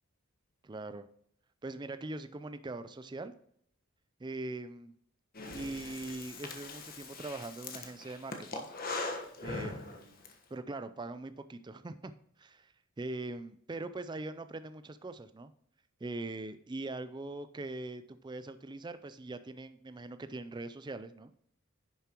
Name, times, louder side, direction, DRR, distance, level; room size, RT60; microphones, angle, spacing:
voice 1, 0.6-1.1 1.6-3.3 4.2-4.9 5.5-8.7 9.4-10.2 10.5-12.1 12.4-15.5 16.0-21.3, right 2 dB, 20° right, 11 dB, 0.4 m, -42 dB
Breathing, 5.3-10.3, left 3 dB, 40° left, 1.3 m, -41 dB
10.5 x 6.9 x 3.0 m, 0.67 s
head